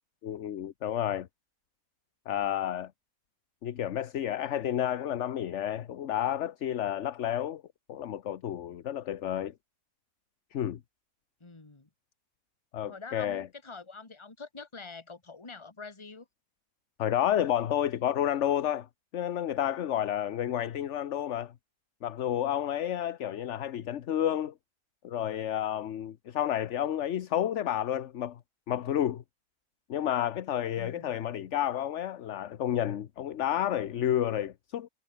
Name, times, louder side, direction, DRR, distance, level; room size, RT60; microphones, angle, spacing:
voice 1, 0.2-1.3 2.3-2.9 3.6-7.6 7.9-9.5 10.5-10.8 12.7-13.5 17.0-18.9 19.1-21.5 22.0-24.5 25.0-28.4 28.7-29.2 29.9-34.9, left 11 dB, 60° left, 1.1 m, -30 dB
voice 2, 11.4-11.9 12.9-16.3 30.8-31.1, left 4 dB, 20° left, 1.9 m, -45 dB
omnidirectional pair, 1.5 m